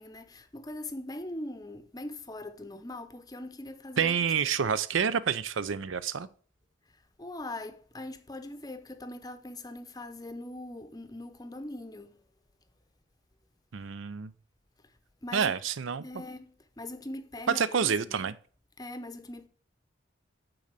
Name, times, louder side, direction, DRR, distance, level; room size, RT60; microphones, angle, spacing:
voice 1, 0.0-4.2 6.9-12.2 14.8-14.9 15.2-15.6 16.0-18.2 18.8-19.5, left 1 dB, 20° left, 0.6 m, -41 dB
voice 2, 4.0-6.3 13.7-14.3 15.3-16.0 17.5-18.3, right 7 dB, 80° right, 0.5 m, -28 dB
8.7 x 3.9 x 6.6 m
head